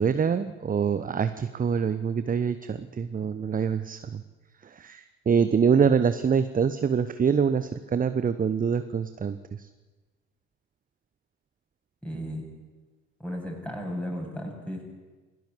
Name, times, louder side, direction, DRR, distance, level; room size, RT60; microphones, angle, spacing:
voice 1, 0.0-4.2 4.6-9.7, right 6 dB, 20° right, 12 dB, 1.0 m, -25 dB
voice 2, 12.0-12.5 13.2-14.8, equal, 5° left, 1 dB, 8.0 m, -34 dB
27.5 x 17.0 x 8.2 m, 1.3 s
figure-of-eight pair, 60°, 38 cm